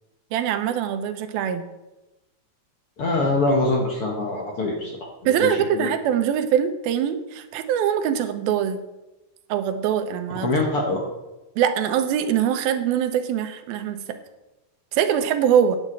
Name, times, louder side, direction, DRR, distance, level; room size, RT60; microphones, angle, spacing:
voice 1, 0.3-1.6 5.3-8.8 9.5-10.5 11.6-14.0 14.9-15.8, right 9 dB, 85° right, 8 dB, 2.7 m, -23 dB
voice 2, 3.0-5.1 5.4-5.9 10.4-11.0, left 2 dB, 55° left, 0 dB, 1.8 m, -24 dB
9.2 x 7.3 x 8.0 m, 1.0 s
omnidirectional pair, 4.2 m